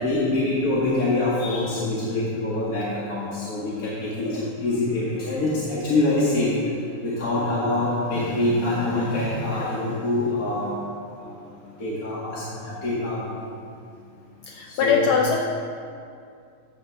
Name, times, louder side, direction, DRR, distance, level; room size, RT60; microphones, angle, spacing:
voice 1, 0.0-6.5 7.0-10.7 11.2-11.4 11.8-13.5 14.7-15.1, left 2 dB, 50° left, -8 dB, 1.5 m, -25 dB
voice 2, 14.5-15.4, left 6 dB, 75° left, 0 dB, 1.4 m, -21 dB
13.0 x 8.6 x 2.2 m, 2.4 s
omnidirectional pair, 2.3 m